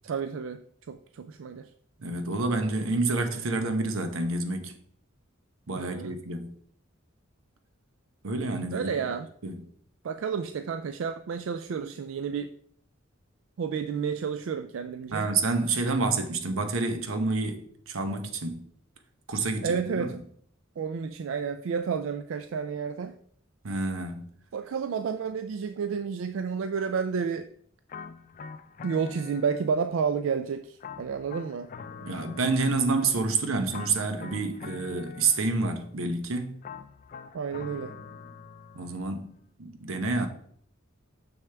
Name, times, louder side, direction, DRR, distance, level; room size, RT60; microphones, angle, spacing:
voice 1, 0.0-0.6 0.9-1.7 5.7-6.2 8.7-9.3 10.0-12.5 13.6-15.3 19.6-20.2 20.8-23.2 24.5-27.5 28.8-31.7 37.3-37.9, right 6 dB, 70° right, 0.3 m, -31 dB
voice 2, 2.0-4.7 5.7-6.5 8.2-8.9 9.4-9.6 15.1-18.6 19.3-20.1 23.6-24.3 32.0-36.6 38.7-39.3 39.6-40.3, right 3 dB, 85° right, 0.9 m, -28 dB
sound 1, 27.9-30.0 30.8-33.2 33.7-35.8 36.6-39.0, left 5 dB, 40° left, 0.4 m, -44 dB
6.5 x 6.3 x 3.4 m
head